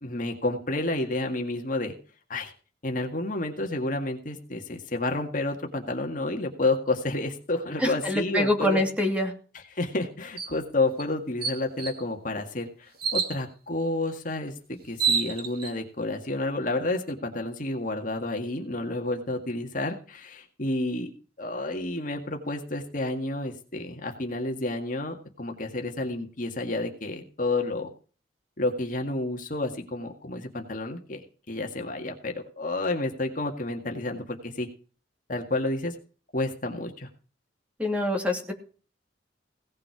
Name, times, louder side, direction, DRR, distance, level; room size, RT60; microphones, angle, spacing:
voice 1, 0.0-1.9 2.3-2.5 2.8-8.8 9.5-14.5 14.8-21.1 21.4-27.9 28.6-34.7 35.3-35.9 36.3-37.1, left 2 dB, 50° left, 3 dB, 1.9 m, -30 dB
voice 2, 7.8-9.3 37.8-38.5, left 1 dB, 5° right, 2 dB, 2.6 m, -25 dB
sound 1, 10.4-10.6 11.0-11.1 11.4-12.0 13.0-13.4 14.5-14.6 14.8-15.7, right 6 dB, 55° right, 2.2 m, -27 dB
17.5 x 7.5 x 4.8 m, 0.38 s
head